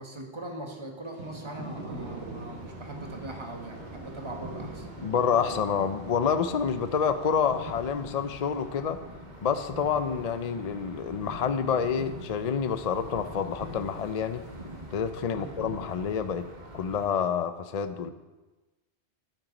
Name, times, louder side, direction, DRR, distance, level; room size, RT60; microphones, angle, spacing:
voice 1, 0.0-4.8 15.3-15.6, right 1 dB, 25° right, 2 dB, 1.5 m, -41 dB
Thunder / Rain, 1.1-8.7, right 2 dB, 80° right, 1.8 m, -45 dB
sound 1, 1.9-17.1, equal, 45° right, 2.0 m, -44 dB
voice 2, 5.0-9.0 9.4-14.4 14.9-16.5 16.7-18.1, left 7 dB, 45° left, 10 dB, 0.5 m, -28 dB
12.0 x 8.8 x 5.3 m, 1.2 s
omnidirectional pair, 1.1 m